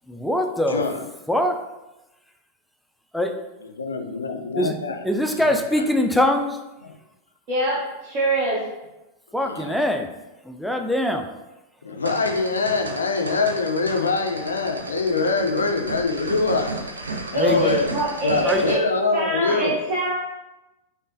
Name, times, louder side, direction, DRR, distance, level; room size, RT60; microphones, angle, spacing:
voice 1, 0.1-0.8 1.3-1.6 3.1-3.3 4.6-4.8 5.0-6.6 9.3-10.1 10.5-11.3 17.4-17.7 18.5-18.6, left 1 dB, ahead, 4 dB, 0.3 m, -22 dB
voice 2, 0.7-1.0 3.7-5.1 5.4-5.5 5.8-5.9 6.8-6.9 9.4-9.8 11.8-16.9 17.3-17.9 18.2-19.8, left 3 dB, 75° left, 5 dB, 0.4 m, -24 dB
voice 3, 7.5-8.6 17.3-18.8 19.1-20.2, equal, 40° right, -7 dB, 0.8 m, -24 dB
sound 1, 12.0-18.7, right 2 dB, 75° right, 0.4 m, -34 dB
5.1 x 2.2 x 2.5 m, 1.0 s
figure-of-eight pair, 90°, 0 cm